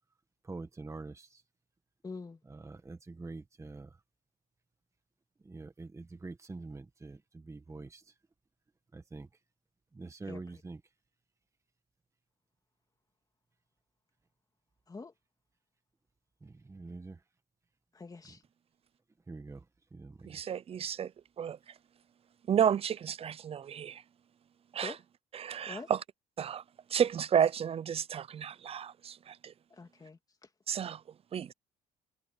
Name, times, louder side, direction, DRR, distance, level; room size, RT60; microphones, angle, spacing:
voice 1, 0.4-1.4 2.4-4.0 5.4-8.1 8.9-9.3 9.9-10.8 16.4-17.2 18.3-18.4 19.3-20.4, right 3 dB, 15° right, 1.7 m, -45 dB
voice 2, 2.0-2.4 10.3-10.4 14.9-15.1 17.9-18.4 24.8-25.0 25.7-25.9 29.7-30.2, left 4 dB, 20° left, 2.8 m, -44 dB
voice 3, 20.3-21.1 21.4-21.6 22.5-24.0 24.7-24.9 25.3-26.0 26.4-26.6 26.9-29.5 30.7-31.0 31.3-31.5, right 8 dB, 35° right, 0.6 m, -31 dB
cardioid pair, 110°, 17 cm